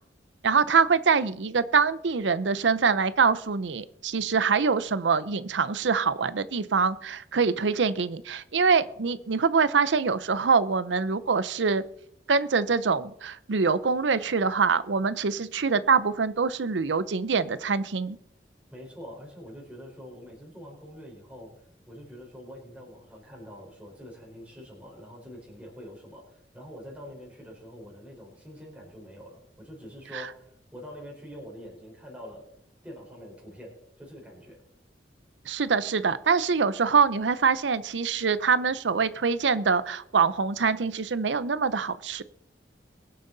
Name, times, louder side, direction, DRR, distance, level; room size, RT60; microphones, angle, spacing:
voice 1, 0.4-11.8 12.3-18.2 30.1-30.2 35.5-42.2, right 5 dB, 90° right, 16 dB, 0.6 m, -24 dB
voice 2, 18.7-32.4 32.8-34.6, equal, 10° right, -3 dB, 4.3 m, -45 dB
22.5 x 7.6 x 4.0 m, 0.72 s
head